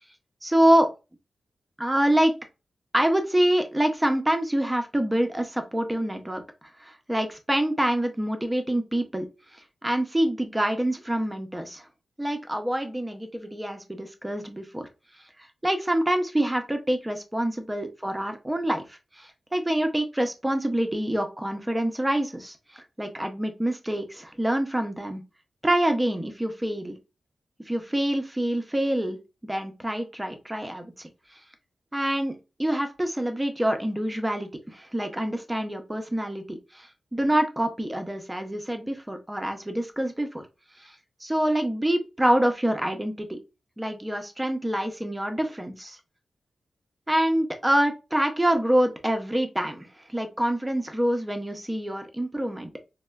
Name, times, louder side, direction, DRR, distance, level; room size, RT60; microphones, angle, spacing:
voice 1, 0.4-0.9 1.8-2.4 2.9-6.4 6.8-9.3 9.5-11.9 12.2-14.9 15.6-25.2 25.6-27.0 27.7-29.2 29.4-31.1 31.9-40.5 40.8-41.0 41.2-43.4 43.8-46.0 47.1-52.7, right 1 dB, 10° right, 6 dB, 0.5 m, -26 dB
4.1 x 2.1 x 2.3 m, 0.28 s
wide cardioid pair, 115°, 0 cm